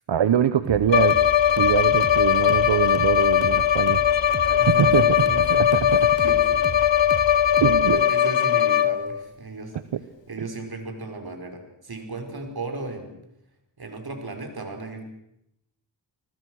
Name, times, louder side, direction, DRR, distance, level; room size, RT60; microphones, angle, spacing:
voice 1, 0.1-1.2 1.5-4.0 4.5-5.2 5.5-6.1 7.5-8.0 9.9-10.0 10.4-10.5, right 9 dB, 80° right, 13 dB, 1.0 m, -23 dB
sound 1, 0.6-8.0, right 6 dB, 35° right, 0.9 m, -35 dB
Bowed string instrument, 0.9-9.2, left 10 dB, 85° left, 1.2 m, -20 dB
voice 2, 4.6-6.7 7.8-9.7 10.3-13.2 13.8-15.0, right 3 dB, 55° right, 5 dB, 5.4 m, -35 dB
29.5 x 20.0 x 6.4 m, 0.81 s
cardioid pair, 65°, 43 cm